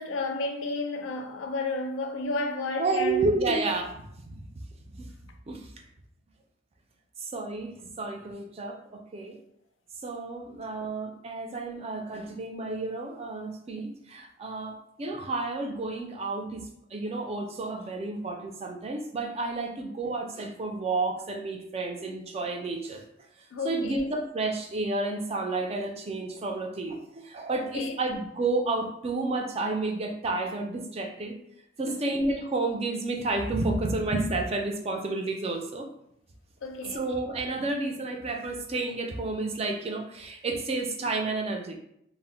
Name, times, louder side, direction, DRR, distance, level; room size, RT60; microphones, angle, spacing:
voice 1, 0.0-3.3 23.5-24.1 27.6-28.0 31.9-32.3 36.6-37.0, left 2 dB, 90° left, 0.4 m, -32 dB
voice 2, 2.8-4.6 4.9-5.1 5.5-5.7 7.2-9.4 10.0-16.6 16.9-23.0 23.6-31.3 31.8-35.9 36.9-41.8, right 2 dB, 30° right, 0.4 m, -31 dB
2.1 x 2.0 x 3.7 m
head